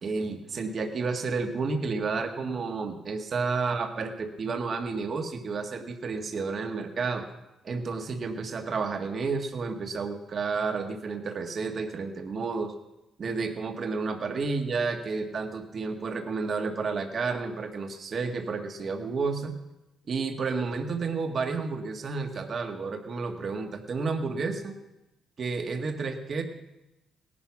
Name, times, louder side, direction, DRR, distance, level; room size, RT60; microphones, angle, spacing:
voice 1, 0.0-7.2 7.6-12.7 13.2-19.5 20.1-24.7 25.4-26.4, right 4 dB, 50° right, 5 dB, 1.8 m, -31 dB
18.0 x 11.0 x 6.0 m, 0.95 s
cardioid pair, 90°, 0 cm